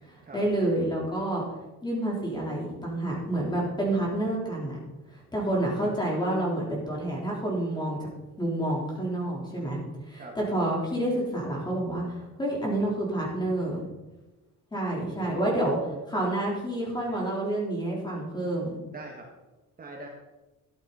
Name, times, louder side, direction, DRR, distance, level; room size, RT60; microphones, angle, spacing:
voice 1, 0.0-1.4 1.8-4.7 5.1-8.1 8.4-9.8 10.1-13.8 14.7-15.8 16.1-18.7, right 1 dB, 15° left, -3 dB, 3.8 m, -29 dB
voice 2, 10.2-10.5 15.0-15.7 18.9-19.3 19.8-20.1, right 3 dB, 30° right, 0 dB, 1.6 m, -42 dB
13.0 x 11.0 x 4.2 m, 1.1 s
cardioid pair, 165°, 31 cm